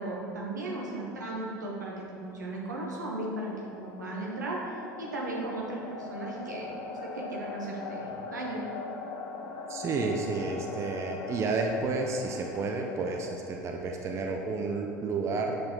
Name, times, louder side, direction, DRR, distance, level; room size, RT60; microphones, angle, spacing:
voice 1, 0.0-8.7, right 2 dB, 75° right, -3 dB, 1.1 m, -36 dB
sound 1, 3.1-14.0, left 4 dB, 50° left, 0.6 m, -41 dB
voice 2, 9.7-15.5, right 3 dB, 30° right, 2 dB, 0.6 m, -31 dB
7.7 x 4.3 x 3.7 m, 2.6 s
figure-of-eight pair, 70°, 10 cm